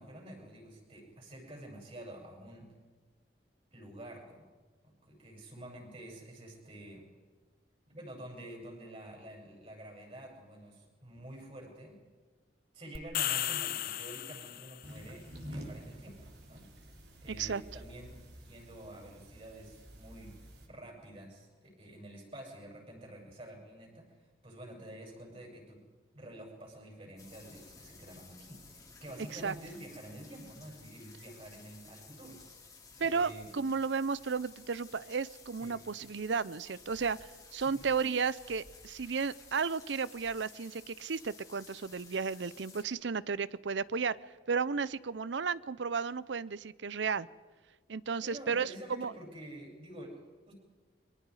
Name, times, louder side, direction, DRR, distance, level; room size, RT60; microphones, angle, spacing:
voice 1, 0.0-2.7 3.7-4.4 4.8-7.1 7.9-12.0 12.7-16.7 17.2-20.4 20.6-25.8 26.1-33.5 35.6-35.8 37.6-37.8 48.2-50.5, right 1 dB, 35° right, -1 dB, 7.5 m, -49 dB
sound 1, 13.0-14.9, left 12 dB, 50° left, 0.7 m, -34 dB
sound 2, 14.8-20.7, equal, 60° right, 3.7 m, -49 dB
voice 2, 17.3-17.6 29.3-29.5 33.0-44.2 44.5-47.3 47.9-49.1, right 5 dB, 80° right, 19 dB, 0.6 m, -33 dB
sound 3, 27.2-42.8, left 4 dB, 20° left, 2.7 m, -55 dB
30.0 x 24.0 x 4.9 m, 1.4 s
head